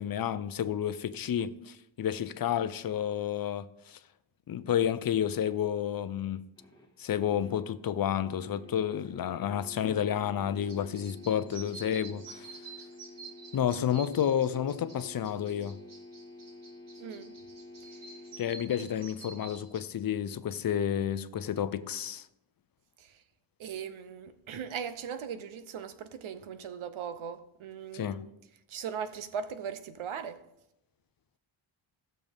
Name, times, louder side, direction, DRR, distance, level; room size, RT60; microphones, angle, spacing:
voice 1, 0.0-4.0 4.5-6.4 7.0-12.6 13.5-15.8 18.4-22.2 27.9-28.3, left 9 dB, 45° left, 0.6 m, -30 dB
sound 1, 6.6-18.8, left 2 dB, 10° left, 1.8 m, -50 dB
sound 2, 10.6-19.8, right 4 dB, 40° right, 1.4 m, -49 dB
voice 2, 17.0-17.3 17.8-18.1 23.0-23.2 23.6-28.3 28.7-30.5, right 7 dB, 75° right, 0.9 m, -39 dB
15.5 x 6.7 x 3.6 m
cardioid pair, 100°, 49 cm